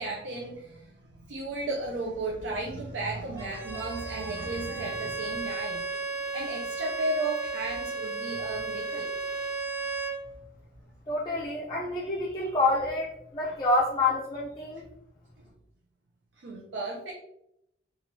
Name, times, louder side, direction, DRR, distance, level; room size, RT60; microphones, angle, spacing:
voice 1, 0.0-5.9 6.3-9.1 16.4-17.1, right 2 dB, 80° right, -1 dB, 0.4 m, -34 dB
Bowed string instrument, 3.4-10.2, right 3 dB, 15° right, 0.7 m, -34 dB
voice 2, 11.1-14.9, left 2 dB, 25° left, -6 dB, 0.4 m, -28 dB
2.6 x 2.4 x 2.9 m, 0.82 s
head